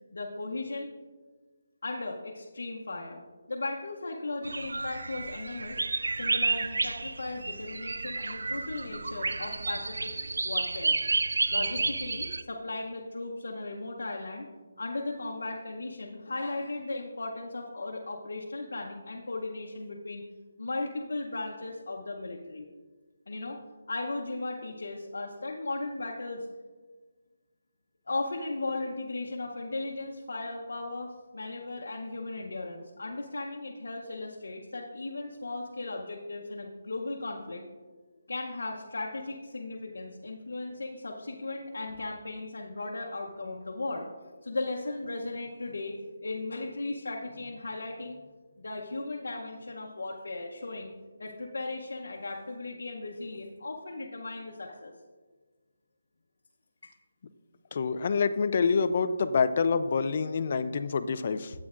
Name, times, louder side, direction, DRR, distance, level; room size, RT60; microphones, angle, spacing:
voice 1, 0.1-0.9 1.8-5.9 6.1-10.1 10.4-11.0 11.5-14.5 14.8-20.2 20.6-22.7 23.3-23.6 23.9-26.5 28.1-37.6 38.3-44.1 44.4-46.0 46.2-48.2 48.6-50.9 51.2-54.9 56.8-56.9, left 2 dB, 80° left, -1 dB, 0.8 m, -36 dB
sound 1, 4.4-12.4, right 3 dB, 80° right, 0.3 m, -31 dB
voice 2, 57.7-61.5, left 5 dB, 40° left, 11 dB, 0.3 m, -27 dB
9.5 x 8.3 x 2.5 m, 1.4 s
hypercardioid pair, 170°, 0 cm